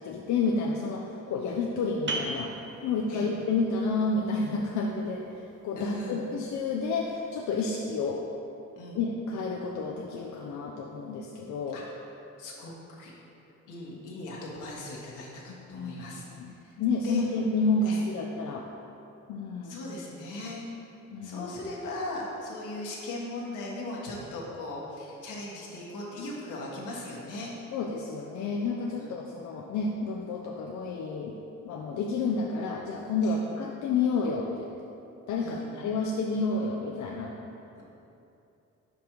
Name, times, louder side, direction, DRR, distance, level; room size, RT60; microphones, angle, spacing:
voice 1, 0.0-2.5 2.8-8.2 8.9-11.8 15.6-18.6 19.3-19.8 21.1-21.5 27.7-31.4 31.6-34.7 35.3-37.3, left 3 dB, 70° left, 0 dB, 0.6 m, -30 dB
sound 1, 2.1-7.4, right 2 dB, 40° right, 0.8 m, -41 dB
voice 2, 5.7-6.2 8.7-9.0 11.7-11.8 12.4-13.1 13.7-16.2 16.6-16.7 17.0-17.2 17.8-18.0 19.6-20.6 21.2-27.5 29.0-29.1 33.2-33.4 35.4-35.8 37.7-37.8, left 2 dB, 85° left, -4 dB, 1.4 m, -38 dB
5.3 x 5.1 x 4.5 m, 2.8 s
cardioid pair, 90°, 30 cm